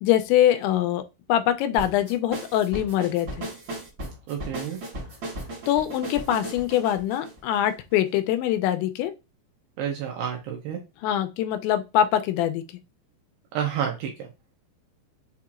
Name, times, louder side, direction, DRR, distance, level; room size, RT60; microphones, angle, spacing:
voice 1, 0.0-1.0 1.3-3.5 5.7-9.1 11.0-12.6, left 11 dB, 85° left, 2.9 m, -23 dB
sound 1, 1.8-8.1, right 1 dB, 60° right, 1.3 m, -36 dB
voice 2, 4.3-4.8 9.8-10.8 13.5-14.3, right 8 dB, 80° right, 2.5 m, -30 dB
7.2 x 2.8 x 2.5 m
omnidirectional pair, 5.2 m